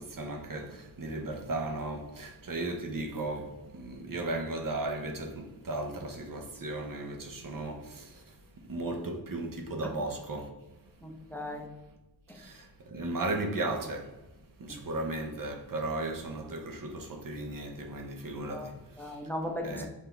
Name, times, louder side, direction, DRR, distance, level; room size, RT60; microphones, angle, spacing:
voice 1, 0.0-10.5 12.3-14.2 14.6-19.2 19.6-19.9, right 2 dB, 55° right, 0.9 m, -36 dB
voice 2, 11.0-11.7 12.3-12.4 14.7-14.8 18.5-19.9, left 1 dB, 5° left, 0.7 m, -38 dB
5.6 x 2.8 x 3.4 m
wide cardioid pair, 65°, 39 cm